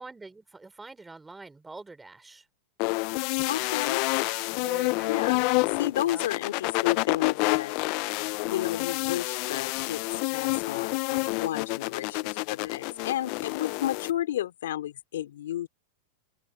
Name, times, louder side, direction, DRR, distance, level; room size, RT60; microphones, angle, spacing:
voice 1, 0.0-2.5 4.5-5.7 6.0-6.2, right 3 dB, 10° right, 3.7 m, -45 dB
sound 1, 2.8-14.1, left 25 dB, 50° left, 0.5 m, -28 dB
voice 2, 3.5-4.0 5.1-5.4 5.8-7.7 8.5-15.7, left 12 dB, 85° left, 3.0 m, -32 dB
supercardioid pair, 135°, 0 cm